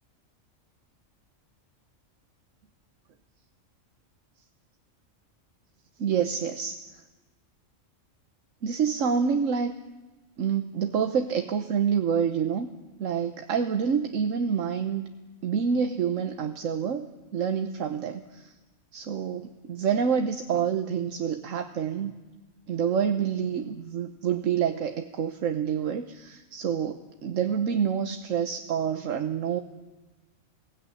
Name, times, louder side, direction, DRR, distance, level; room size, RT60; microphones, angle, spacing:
voice 1, 6.0-6.8 8.6-9.7 10.4-12.7 13.0-15.1 15.4-18.5 18.9-22.1 22.7-29.6, right 7 dB, 75° right, 7 dB, 1.3 m, -27 dB
22.5 x 16.5 x 9.9 m, 1.2 s
omnidirectional pair, 1.4 m